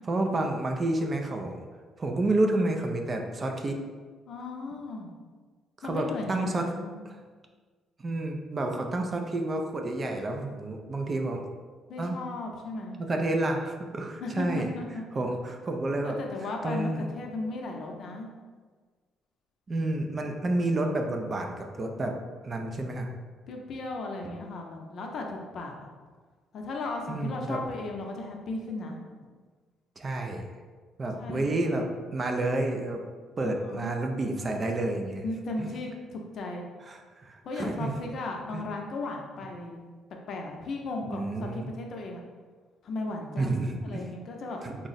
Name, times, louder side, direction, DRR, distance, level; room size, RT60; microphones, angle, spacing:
voice 1, 0.0-1.6 2.0-3.8 5.8-6.7 8.0-11.4 12.0-12.2 13.0-14.7 15.1-16.1 16.6-17.0 19.7-22.2 22.4-23.1 27.1-27.6 30.0-30.4 31.0-31.9 32.1-33.0 33.4-35.2 35.6-35.7 36.9-37.9 38.5-38.6 41.1-41.7 43.4-44.0 44.6-44.8, right 2 dB, 30° right, 3 dB, 0.4 m, -29 dB
voice 2, 4.3-5.1 5.8-7.0 11.9-13.0 14.2-15.0 16.0-18.3 23.5-25.9 26.5-29.0 31.2-31.6 33.4-33.9 35.2-36.6 37.4-39.8 40.3-42.2 42.8-44.6, left 2 dB, 55° left, 1 dB, 0.5 m, -36 dB
3.6 x 2.0 x 4.0 m, 1.5 s
cardioid pair, 120°, 0 cm